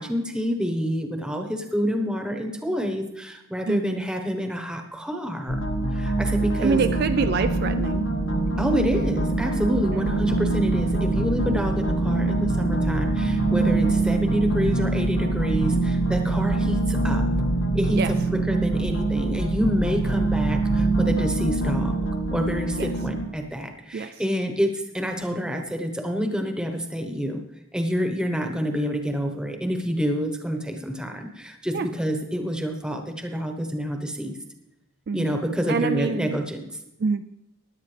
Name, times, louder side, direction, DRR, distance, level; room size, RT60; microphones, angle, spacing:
voice 1, 0.0-5.6 5.9-6.8 8.6-17.2 17.7-22.0 22.3-27.4 27.7-34.4 35.1-36.6, equal, 5° right, 4 dB, 1.0 m, -27 dB
voice 2, 3.7-4.1 6.6-8.1 9.9-10.2 17.9-18.1 22.8-22.9 23.9-24.2 31.7-31.9 35.1-35.4 35.7-36.4 37.0-37.2, right 5 dB, 45° right, 9 dB, 0.3 m, -26 dB
sound 1, 5.5-23.2, right 2 dB, 65° left, 1.6 m, -24 dB
16.5 x 10.5 x 3.3 m, 0.87 s
head